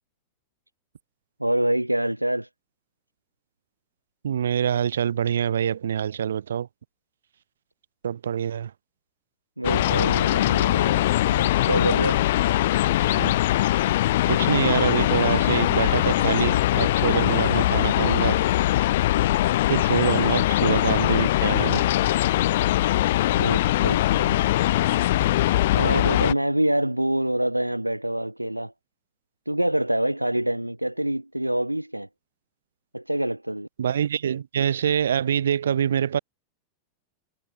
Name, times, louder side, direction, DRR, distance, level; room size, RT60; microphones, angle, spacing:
voice 1, 1.4-2.5 9.6-12.3 23.4-24.3 25.8-28.7 29.5-32.1 32.9-33.7, right 1 dB, 85° right, 1.8 m, -26 dB
voice 2, 4.2-6.7 8.0-8.7 13.1-13.3 14.3-18.4 19.7-21.9 33.8-36.2, right 8 dB, 65° right, 2.9 m, -25 dB
sound 1, 9.6-26.3, left 15 dB, 55° left, 1.4 m, -21 dB
figure-of-eight pair, 90°, 0 cm